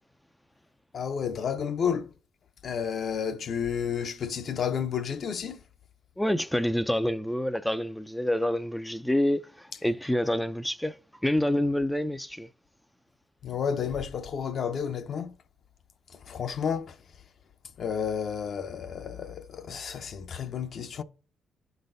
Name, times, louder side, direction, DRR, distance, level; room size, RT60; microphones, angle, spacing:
voice 1, 0.9-2.1 2.6-5.6 13.4-15.3 16.3-17.0 17.8-21.0, left 7 dB, 55° left, 0.6 m, -31 dB
voice 2, 6.2-11.0 11.2-12.5, left 1 dB, 5° left, 0.4 m, -27 dB
12.0 x 4.0 x 2.6 m
cardioid pair, 90°, 0 cm